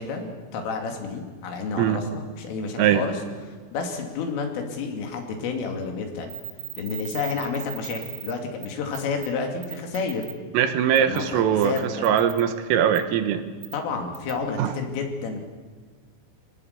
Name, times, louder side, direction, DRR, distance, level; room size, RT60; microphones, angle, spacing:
voice 1, 0.0-3.2 3.7-6.3 6.8-10.3 11.0-12.1 13.7-15.4, left 5 dB, 75° left, 3 dB, 5.1 m, -30 dB
sound 1, 6.3-8.3 8.6-8.7 8.9-9.3 9.6-10.3 11.0-11.2 11.6-12.4 12.9-13.0 13.6-13.8 14.2-14.3, right 17 dB, 65° right, 2.9 m, -37 dB
voice 2, 10.5-13.4 14.6-14.7, right 9 dB, 90° right, 8 dB, 4.1 m, -21 dB
25.5 x 18.5 x 8.3 m, 1.5 s
omnidirectional pair, 5.9 m